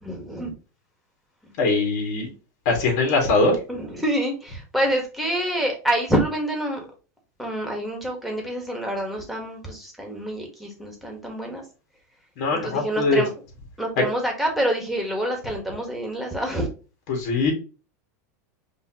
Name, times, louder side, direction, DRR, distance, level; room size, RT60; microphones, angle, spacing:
voice 1, 0.0-0.5 3.7-6.9 7.4-11.6 12.6-13.3 13.8-16.7, right 1 dB, ahead, 1 dB, 1.6 m, -27 dB
voice 2, 1.6-2.3 2.7-3.6 12.4-13.2 14.0-14.1 17.1-17.5, left 3 dB, 60° left, 1 dB, 2.2 m, -21 dB
5.4 x 3.0 x 3.0 m, 0.34 s
supercardioid pair, 135°, 9 cm